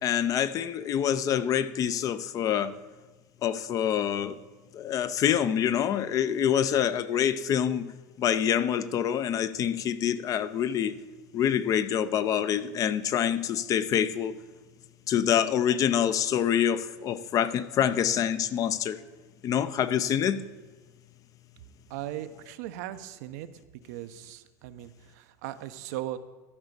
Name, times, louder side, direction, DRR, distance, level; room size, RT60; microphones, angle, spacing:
voice 1, 0.0-2.7 3.4-4.4 4.7-7.9 8.2-10.9 11.3-14.3 15.1-19.0 19.4-20.4, left 9 dB, 40° left, 14 dB, 0.6 m, -26 dB
voice 2, 21.9-23.5 23.9-26.2, right 13 dB, 75° right, 10 dB, 0.7 m, -38 dB
13.0 x 4.9 x 6.8 m, 1.3 s
supercardioid pair, 115°, 9 cm